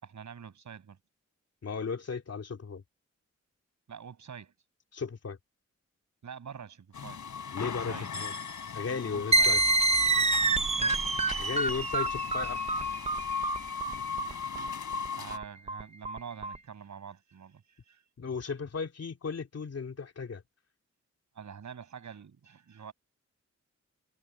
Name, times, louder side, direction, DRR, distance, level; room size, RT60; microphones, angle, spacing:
voice 1, 0.0-1.0 3.9-4.5 6.2-7.2 7.6-8.1 8.9-9.6 10.8-11.1 15.1-18.0 21.3-22.9, right 7 dB, 80° right, 6.8 m, -46 dB
voice 2, 1.6-2.8 4.9-5.4 7.5-8.3 8.7-9.6 11.4-12.6 18.2-20.4, left 5 dB, 60° left, 2.8 m, -35 dB
sound 1, 6.9-15.4, left 6 dB, 90° left, 3.6 m, -37 dB
sound 2, 9.3-16.6, right 3 dB, 20° right, 0.5 m, -27 dB
wide cardioid pair, 120°, 29 cm